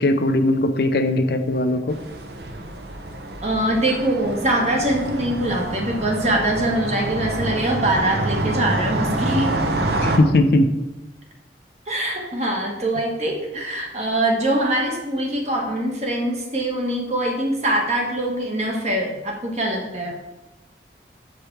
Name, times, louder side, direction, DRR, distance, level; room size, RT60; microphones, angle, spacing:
voice 1, 0.0-1.9 10.0-10.7, left 1 dB, 60° left, 8 dB, 0.5 m, -19 dB
sound 1, 1.9-10.2, right 1 dB, 65° right, 0.8 m, -27 dB
voice 2, 3.4-9.5 11.9-20.2, right 1 dB, 40° right, 0 dB, 1.3 m, -23 dB
6.6 x 4.9 x 4.6 m, 1.0 s
head